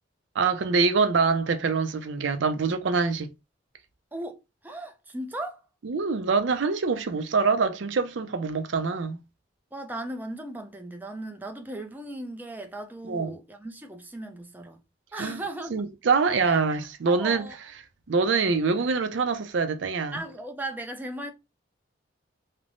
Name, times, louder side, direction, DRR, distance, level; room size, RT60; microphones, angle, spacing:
voice 1, 0.4-3.3 5.8-9.2 13.0-13.3 15.2-15.4 15.7-17.4 18.1-20.2, right 4 dB, 75° right, 0.5 m, -25 dB
voice 2, 4.1-5.7 9.7-14.8 15.1-15.9 16.5-16.6 17.1-17.6 20.1-21.3, right 1 dB, 10° right, 0.4 m, -37 dB
3.1 x 2.0 x 2.5 m
head